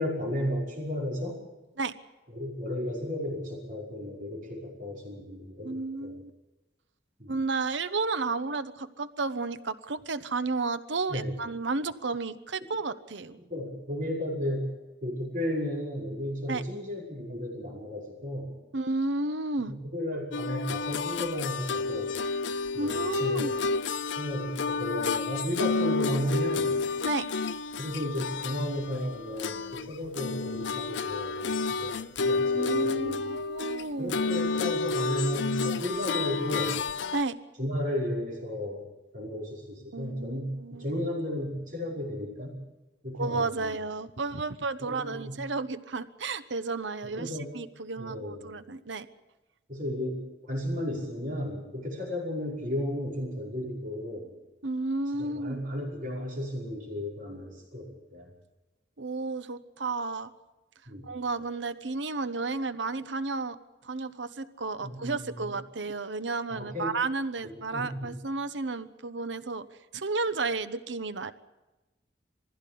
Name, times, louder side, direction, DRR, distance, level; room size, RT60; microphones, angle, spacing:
voice 1, 0.0-1.4 2.3-6.1 7.2-7.3 11.1-11.3 13.4-18.6 19.7-22.1 22.7-23.5 24.2-26.8 27.8-33.3 34.0-36.7 37.6-38.8 39.1-42.6 43.0-43.7 44.8-45.4 47.1-47.5 48.0-48.5 49.7-54.3 55.2-58.3 60.9-61.1 64.8-65.5 66.5-66.9 67.7-68.1, left 1 dB, 45° right, -2 dB, 5.5 m, -34 dB
voice 2, 5.6-6.3 7.3-13.4 16.5-16.6 18.7-19.7 22.8-23.6 27.0-27.3 32.5-34.1 37.1-37.3 39.9-40.8 43.1-49.1 54.6-55.6 59.0-60.3 61.0-63.6 63.8-69.7 69.9-71.3, right 3 dB, 85° right, 12 dB, 1.0 m, -32 dB
sound 1, 20.3-29.9 30.2-37.2, left 4 dB, 80° left, 0.7 m, -30 dB
21.5 x 15.5 x 8.6 m, 1.1 s
head